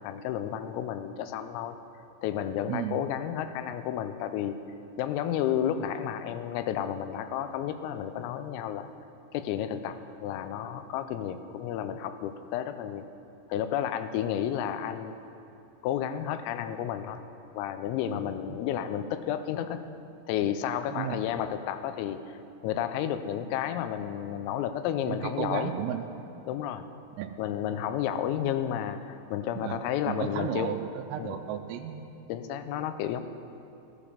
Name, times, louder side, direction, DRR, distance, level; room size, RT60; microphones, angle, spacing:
voice 1, 0.0-1.8 2.2-4.6 5.0-8.9 9.3-13.0 13.5-15.2 15.8-17.2 17.5-19.8 20.3-25.7 26.5-26.9 27.4-30.7 31.2-31.4 32.3-33.2, left 10 dB, 90° left, 10 dB, 3.4 m, -31 dB
voice 2, 2.7-3.0 18.5-18.6 20.9-21.2 25.1-26.1 27.2-27.4 29.6-32.0, right 10 dB, 90° right, 5 dB, 3.3 m, -34 dB
17.0 x 12.5 x 5.0 m, 2.8 s
omnidirectional pair, 5.8 m